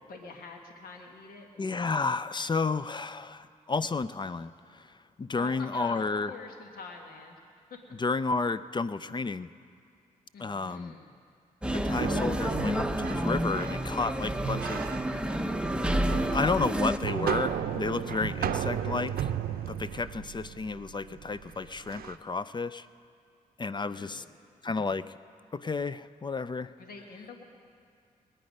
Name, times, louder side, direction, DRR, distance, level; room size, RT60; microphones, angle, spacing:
voice 1, 0.1-1.5 5.3-7.4 7.7-7.8 10.3-11.1 23.9-24.3 26.8-27.4, left 4 dB, 80° left, 3 dB, 1.3 m, -45 dB
voice 2, 1.6-4.5 5.2-6.3 8.0-9.5 10.4-10.9 11.7-14.8 16.3-19.3 19.7-22.9 23.6-24.2 24.6-25.0 25.5-26.7, left 4 dB, 30° left, 15 dB, 0.4 m, -31 dB
sound 1, 11.6-17.0, equal, 5° right, 0.8 m, -29 dB
sound 2, 11.9-22.1, right 9 dB, 80° right, 0.6 m, -35 dB
21.0 x 8.9 x 5.3 m, 2.3 s
supercardioid pair, 55°, 15 cm